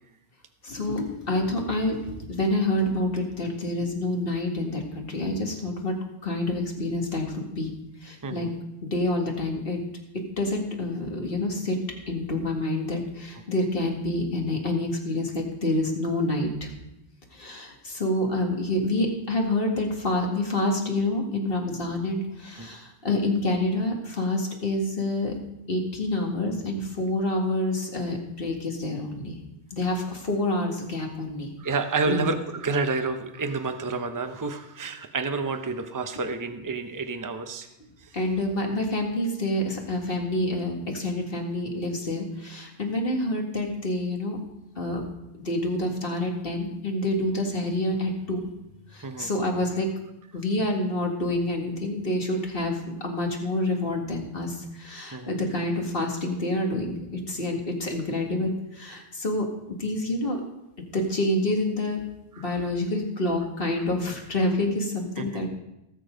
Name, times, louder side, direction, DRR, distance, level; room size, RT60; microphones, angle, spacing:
voice 1, 0.6-5.9 6.2-7.7 8.0-8.5 8.8-9.8 10.4-11.8 12.1-16.7 17.3-25.3 25.7-29.4 29.7-31.5 32.1-32.3 38.1-44.4 44.8-45.0 45.4-48.4 48.9-49.9 50.3-59.5 59.8-60.4 60.9-62.0 62.4-65.5, left 1 dB, 50° left, 1 dB, 2.2 m, -27 dB
voice 2, 8.2-8.5 22.6-22.7 31.6-37.7 38.0-38.2 49.0-49.3 55.1-55.4 62.3-62.5 65.2-65.4, right 3 dB, 20° right, 7 dB, 0.7 m, -29 dB
18.0 x 7.2 x 5.2 m, 0.89 s
omnidirectional pair, 1.2 m